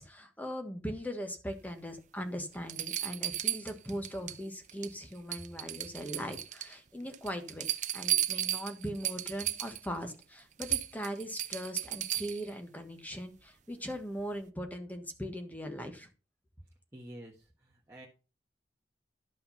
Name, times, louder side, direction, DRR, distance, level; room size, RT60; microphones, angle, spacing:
voice 1, 0.0-7.7 7.9-16.1, equal, 10° left, 6 dB, 1.5 m, -40 dB
sound 1, 2.0-2.1 2.7-4.4 4.7-5.0 5.3-6.7 7.1-9.9 10.2-10.3 10.6-12.5 14.2-14.3, right 12 dB, 45° right, 0.7 m, -34 dB
voice 2, 16.9-17.4 17.9-18.1, right 1 dB, 15° right, -4 dB, 1.4 m, -47 dB
12.0 x 5.6 x 5.6 m, 0.35 s
head